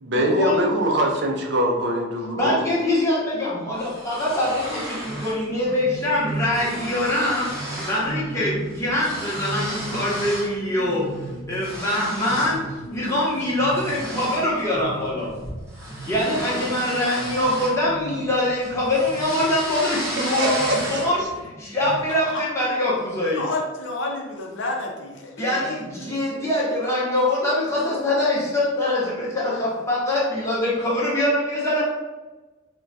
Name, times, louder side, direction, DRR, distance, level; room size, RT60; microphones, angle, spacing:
voice 1, 0.0-2.6 20.4-21.0, right 1 dB, 55° right, 1 dB, 0.4 m, -23 dB
voice 2, 2.4-11.0 11.5-15.3 16.0-21.2 21.6-23.4 25.4-31.8, left 1 dB, 15° left, -7 dB, 0.8 m, -23 dB
sound 1, 3.8-5.4 5.8-6.0 6.3-8.1 8.4-10.6 11.0-12.6 13.1-13.3 13.7-18.3 18.6-21.3, right 1 dB, 15° right, 0.7 m, -34 dB
sound 2, 4.9-19.7 20.4-22.3, right 1 dB, 40° left, 0.9 m, -37 dB
voice 3, 23.3-25.4 26.0-26.1, left 2 dB, 65° left, 1 dB, 0.5 m, -30 dB
2.2 x 2.2 x 3.9 m, 1.2 s
head